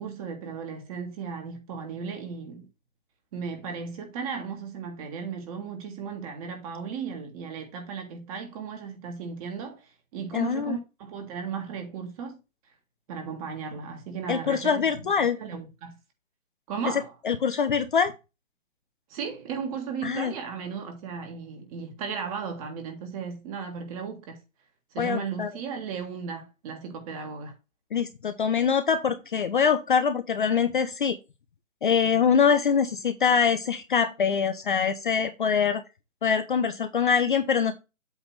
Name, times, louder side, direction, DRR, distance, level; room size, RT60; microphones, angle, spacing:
voice 1, 0.0-2.7 3.3-12.4 13.1-14.9 15.2-16.0 16.7-17.1 19.1-24.4 24.9-27.5, right 6 dB, 25° right, 1.9 m, -35 dB
voice 2, 10.3-10.8 14.3-15.4 16.9-18.1 20.0-20.3 25.0-25.5 27.9-31.2 31.8-35.8 36.2-37.7, left 6 dB, 40° left, 0.6 m, -24 dB
8.1 x 3.3 x 5.7 m
figure-of-eight pair, 145°, 40 cm